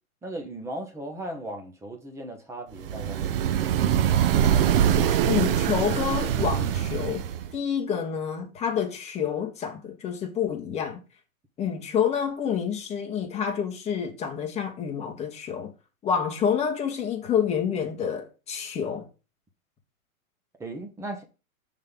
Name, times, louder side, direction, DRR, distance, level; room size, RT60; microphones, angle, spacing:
voice 1, 0.2-3.4 20.6-21.2, right 1 dB, 5° right, 0.7 m, -37 dB
sound 1, 2.8-7.6, right 9 dB, 45° right, 0.5 m, -23 dB
voice 2, 5.3-7.2 7.5-11.0 11.6-15.7 16.0-19.1, left 7 dB, 15° left, 1.2 m, -28 dB
6.3 x 3.7 x 5.2 m
hypercardioid pair, 140°, 43 cm